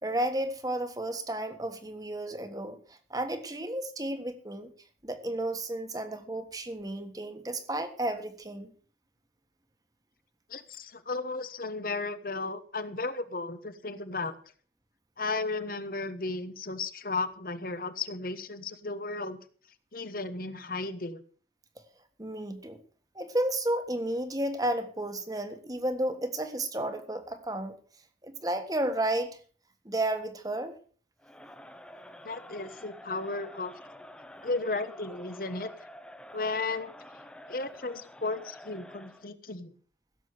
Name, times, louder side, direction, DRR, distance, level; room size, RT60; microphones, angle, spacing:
voice 1, 0.0-4.7 5.0-8.7 22.2-22.8 23.1-27.7 28.2-29.4 29.8-30.7, right 1 dB, 20° right, 1.4 m, -32 dB
voice 2, 10.5-14.4 15.2-19.4 19.9-21.2 32.2-33.7 34.4-35.7 36.3-36.9 37.5-39.7, left 3 dB, 50° left, 1.1 m, -34 dB
Crowd, 31.2-39.3, left 1 dB, 5° left, 0.8 m, -49 dB
16.0 x 7.4 x 6.7 m
head